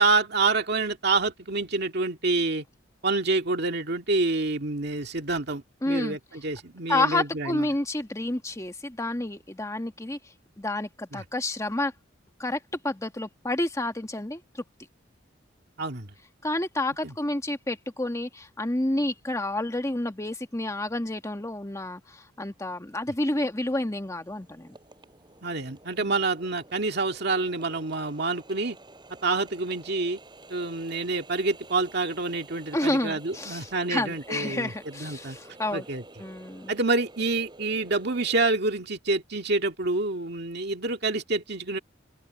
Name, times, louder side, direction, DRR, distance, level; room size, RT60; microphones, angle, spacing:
voice 1, 0.0-2.6 3.0-7.7 11.1-11.2 15.8-16.1 17.0-17.1 25.4-28.8 29.2-30.2 30.5-35.4 35.7-36.0 36.7-41.8, right 3 dB, 60° right, 2.1 m, -27 dB
voice 2, 5.8-6.2 6.9-10.2 10.6-11.9 12.4-12.6 12.8-14.6 16.4-24.8 26.0-26.1 32.7-35.8 36.2-36.7, left 2 dB, 15° left, 1.4 m, -29 dB
Water tap faucet, 22.1-22.2 22.7-38.5, right 2 dB, 25° right, 5.0 m, -51 dB
open air
head